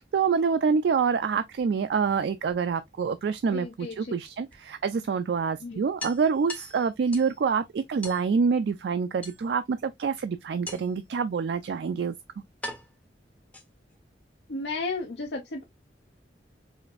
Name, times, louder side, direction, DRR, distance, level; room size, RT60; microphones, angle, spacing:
voice 1, 0.0-12.1, right 5 dB, 65° right, 0.3 m, -26 dB
sound 1, 2.0-3.0 4.5-4.6 5.0-5.1 5.4-5.5 6.0-7.4 8.0-8.3 9.2-9.8 10.7-11.1 11.9-12.0 12.6-14.0, left 2 dB, 10° left, 0.5 m, -41 dB
voice 2, 3.5-4.1 5.6-5.8 14.5-15.6, left 3 dB, 70° left, 0.6 m, -33 dB
5.0 x 2.5 x 2.4 m
head